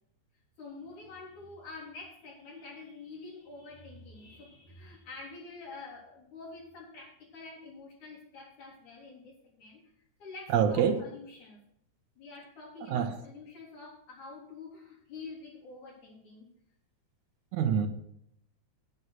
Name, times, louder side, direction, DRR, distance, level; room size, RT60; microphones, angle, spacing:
voice 1, 0.6-9.8 10.2-11.6 12.2-16.5, left 3 dB, 80° left, -3 dB, 5.2 m, -47 dB
voice 2, 10.5-11.0 12.9-13.2 17.5-17.9, right 7 dB, 80° right, 7 dB, 2.5 m, -26 dB
9.7 x 9.5 x 5.9 m, 0.73 s
omnidirectional pair, 3.4 m